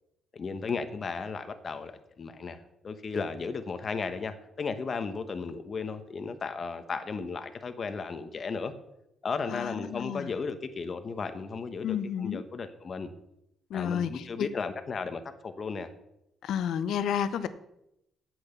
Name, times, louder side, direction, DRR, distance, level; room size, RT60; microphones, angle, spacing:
voice 1, 0.3-8.7 9.2-13.1 13.7-15.9, left 4 dB, 45° left, 9 dB, 1.0 m, -35 dB
voice 2, 9.5-10.3 11.8-12.4 13.7-14.5 16.4-17.5, left 8 dB, 75° left, 13 dB, 0.8 m, -31 dB
8.5 x 7.9 x 6.8 m, 0.83 s
cardioid pair, 90°, 0 cm